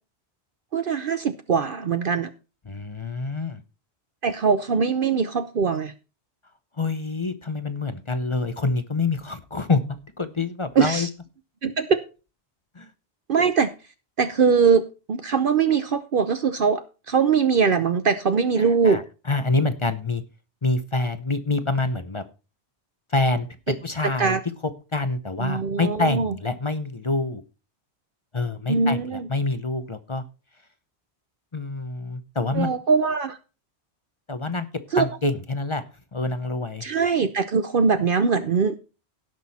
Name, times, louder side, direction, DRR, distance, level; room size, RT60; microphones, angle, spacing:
voice 1, 0.7-2.3 4.2-5.9 10.8-11.1 11.6-12.0 13.3-13.7 14.2-19.0 24.2-24.4 25.4-26.3 28.7-29.3 32.5-33.4 34.9-35.1 36.8-38.7, right 5 dB, 55° right, 0.9 m, -22 dB
voice 2, 2.6-3.6 6.8-9.8 10.2-11.1 12.7-12.9 18.6-19.0 19.3-20.2 20.6-22.2 23.1-23.5 23.8-24.4 24.6-27.4 28.3-30.2 31.5-32.7 34.3-34.7 35.0-35.8 36.1-36.8, left 3 dB, 30° left, 0.8 m, -26 dB
17.0 x 6.2 x 4.2 m
omnidirectional pair, 1.1 m